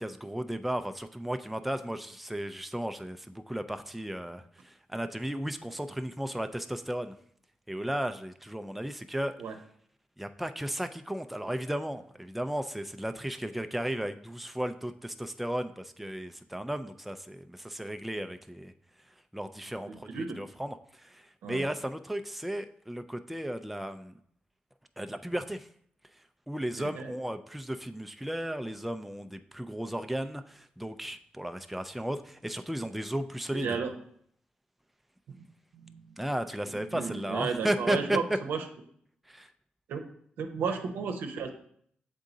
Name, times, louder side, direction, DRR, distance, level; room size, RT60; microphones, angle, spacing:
voice 1, 0.0-7.2 7.7-9.3 10.2-18.7 19.3-24.2 25.0-25.7 26.5-33.8 36.2-38.2 39.3-39.5, right 1 dB, 5° right, 8 dB, 0.4 m, -35 dB
voice 2, 19.9-20.4 21.4-21.7 26.7-27.1 33.5-33.9 35.4-35.5 35.7-36.1 36.6-38.6 39.9-40.0 40.4-41.5, right 5 dB, 85° right, 5 dB, 0.7 m, -34 dB
7.1 x 3.7 x 3.9 m, 0.66 s
cardioid pair, 75°, 3 cm